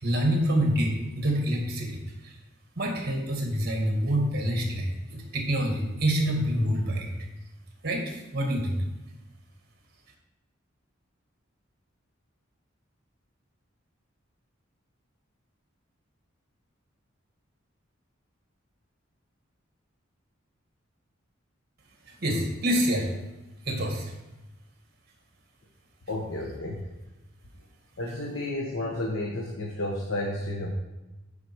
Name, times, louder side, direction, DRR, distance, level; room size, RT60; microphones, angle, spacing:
voice 1, 0.0-2.4 2.8-7.1 7.8-8.8 22.1-23.1 23.7-24.1, equal, 50° right, 1 dB, 1.8 m, -27 dB
voice 2, 26.1-26.8 28.0-30.7, left 1 dB, 70° left, -1 dB, 1.2 m, -31 dB
9.5 x 5.0 x 4.6 m, 1.0 s
head